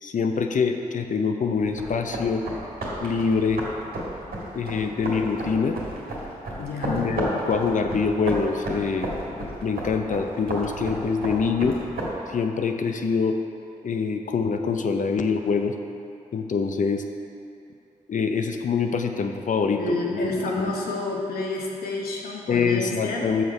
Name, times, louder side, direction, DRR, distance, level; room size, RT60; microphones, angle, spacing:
voice 1, 0.0-2.4 3.0-3.6 4.5-5.8 6.8-11.8 12.3-13.4 13.8-15.7 16.3-17.0 18.1-20.2 20.6-20.7 22.5-23.4, left 5 dB, 55° left, 5 dB, 0.7 m, -25 dB
sound 1, 1.6-12.1, right 1 dB, 80° right, 1.8 m, -33 dB
voice 2, 6.6-7.1 19.8-23.3, left 2 dB, 85° left, -1 dB, 1.0 m, -29 dB
6.3 x 5.9 x 5.3 m, 2.6 s
supercardioid pair, 45°, 15 cm